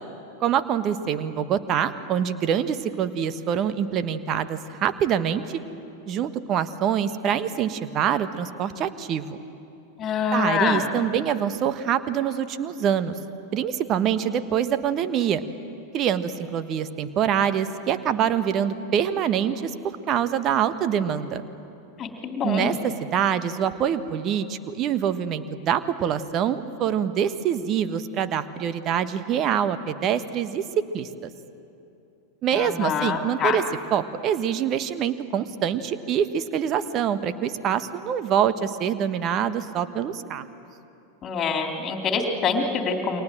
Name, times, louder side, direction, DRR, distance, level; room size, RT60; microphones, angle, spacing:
voice 1, 0.4-5.6 6.1-9.4 10.3-13.1 13.5-15.4 15.9-19.7 20.1-21.4 22.4-30.6 30.9-31.3 32.4-33.6 33.9-40.4, right 9 dB, 35° right, 12 dB, 1.3 m, -25 dB
voice 2, 10.0-10.9 22.0-22.7 32.5-33.6 41.2-43.2, left 5 dB, 25° left, 3 dB, 3.2 m, -25 dB
29.0 x 24.5 x 7.8 m, 2.8 s
figure-of-eight pair, 90°, 0 cm